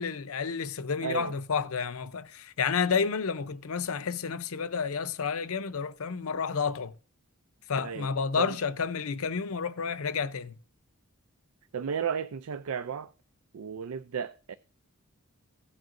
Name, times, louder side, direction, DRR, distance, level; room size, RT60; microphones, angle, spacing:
voice 1, 0.0-6.9 7.7-10.6, left 5 dB, 75° left, 0.6 m, -30 dB
voice 2, 1.0-1.4 7.8-8.1 8.4-8.6 11.7-13.1 13.5-14.5, right 7 dB, 75° right, 0.4 m, -33 dB
16.0 x 7.8 x 2.5 m
head